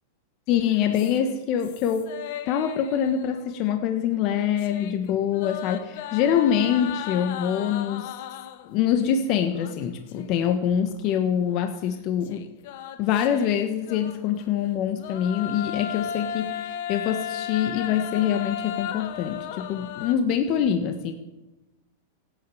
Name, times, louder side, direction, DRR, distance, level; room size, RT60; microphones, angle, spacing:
voice 1, 0.5-2.1 2.5-8.1 8.7-12.5 13.0-21.1, left 9 dB, 45° left, 6 dB, 1.3 m, -25 dB
sound 1, 0.9-3.8 4.1-8.8 9.5-10.6 10.9-11.0 12.2-14.5 14.9-20.1, left 9 dB, 60° left, 1.3 m, -36 dB
16.5 x 8.9 x 8.4 m, 1.1 s
hypercardioid pair, 125°, 0 cm